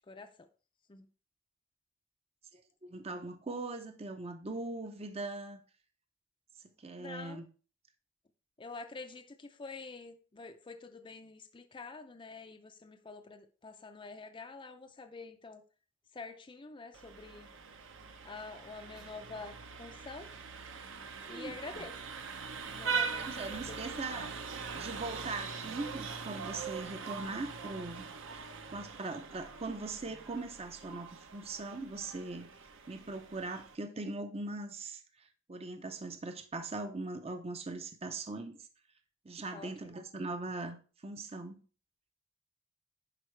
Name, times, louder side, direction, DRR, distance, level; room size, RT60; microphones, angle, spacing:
voice 1, 0.1-0.5 0.9-1.1 7.0-7.4 8.6-15.6 16.1-17.5 18.2-20.3 21.3-21.9 22.6-23.8 39.5-39.9, left 3 dB, 25° left, 7 dB, 0.5 m, -47 dB
voice 2, 2.5-5.6 6.8-7.5 21.2-21.8 23.2-28.1 28.7-32.5 32.9-38.6 39.2-40.8 41.0-41.6, right 3 dB, 30° right, 7 dB, 0.6 m, -41 dB
Vehicle horn car horn honking, 16.9-33.8, right 5 dB, 60° right, 0.8 m, -42 dB
11.0 x 4.6 x 3.2 m, 0.37 s
head